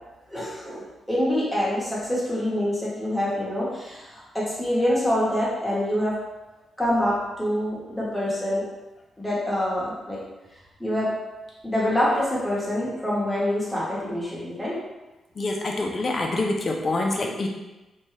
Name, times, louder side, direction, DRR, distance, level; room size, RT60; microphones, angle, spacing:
voice 1, 0.3-6.1 6.8-8.6 9.2-10.2 10.8-11.1 11.6-14.8, left 1 dB, ahead, -8 dB, 1.0 m, -26 dB
voice 2, 15.4-17.5, left 2 dB, 35° left, 0 dB, 0.4 m, -26 dB
2.6 x 2.2 x 3.2 m, 1.1 s
cardioid pair, 115°, 0 cm